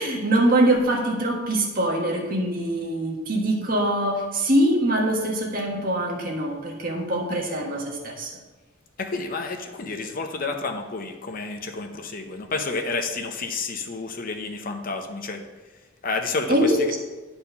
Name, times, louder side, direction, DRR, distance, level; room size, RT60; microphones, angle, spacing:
voice 1, 0.0-8.3 16.5-16.8, right 1 dB, 45° right, -1 dB, 1.5 m, -23 dB
voice 2, 9.0-15.4 16.0-16.7, left 3 dB, 45° left, 4 dB, 0.7 m, -30 dB
10.0 x 4.4 x 5.6 m, 1.2 s
head